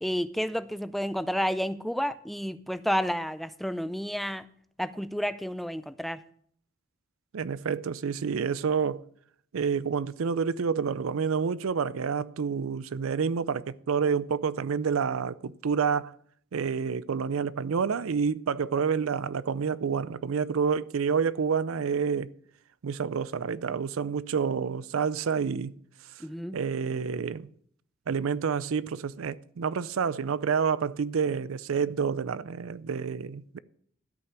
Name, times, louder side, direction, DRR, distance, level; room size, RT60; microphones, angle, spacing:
voice 1, 0.0-4.5 4.8-6.2 26.2-26.6, equal, ahead, 0.3 m, -30 dB
voice 2, 7.3-9.0 9.5-16.1 16.5-22.3 22.8-25.8 26.5-27.5 28.1-33.6, right 6 dB, 75° right, 0.5 m, -28 dB
13.0 x 5.8 x 6.7 m
head